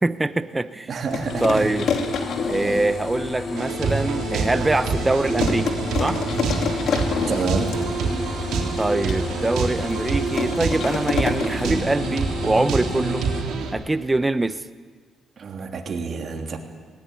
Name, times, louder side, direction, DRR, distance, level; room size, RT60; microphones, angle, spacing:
voice 1, 0.0-0.9 1.4-1.9 2.5-6.2 8.8-13.2 13.7-14.6, right 2 dB, 15° right, 12 dB, 0.9 m, -23 dB
voice 2, 0.9-1.8 2.6-2.8 7.2-7.8 15.4-16.6, right 4 dB, 50° right, 2 dB, 3.2 m, -28 dB
sound 1, 1.1-11.7, left 5 dB, 70° left, 2.7 m, -30 dB
sound 2, 1.2-13.4, left 4 dB, 45° left, 4.1 m, -32 dB
sound 3, 3.6-13.7, right 5 dB, 80° right, 3.6 m, -27 dB
19.0 x 18.5 x 9.6 m, 1.5 s
cardioid pair, 90°, 0 cm